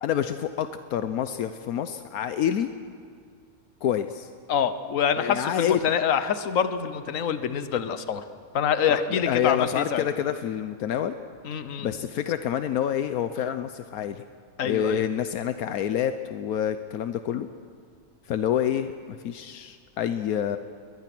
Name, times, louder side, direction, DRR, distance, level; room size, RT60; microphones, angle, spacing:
voice 1, 0.0-2.7 3.8-4.3 5.2-5.8 8.9-11.1 11.8-14.2 14.6-17.5 18.3-20.6, left 9 dB, 80° left, 10 dB, 1.2 m, -27 dB
voice 2, 4.5-8.2 8.5-10.0 11.4-11.9 14.6-15.1, left 8 dB, 65° left, 11 dB, 1.4 m, -26 dB
21.0 x 20.5 x 6.1 m, 2.2 s
omnidirectional pair, 1.5 m